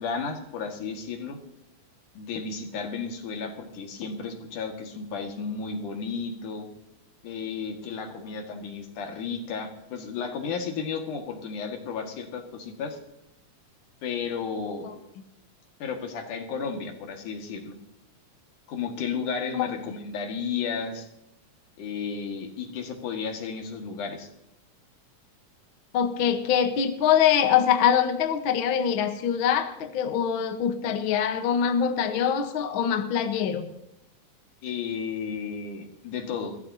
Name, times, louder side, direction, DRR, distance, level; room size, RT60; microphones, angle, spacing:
voice 1, 0.0-1.4 2.1-6.7 7.2-13.0 14.0-14.9 15.8-17.7 18.7-21.1 21.8-24.3 34.6-36.6, left 5 dB, 80° left, 4 dB, 3.3 m, -33 dB
voice 2, 25.9-33.7, left 8 dB, 55° left, 7 dB, 1.4 m, -24 dB
22.0 x 16.0 x 2.8 m, 0.81 s
omnidirectional pair, 3.6 m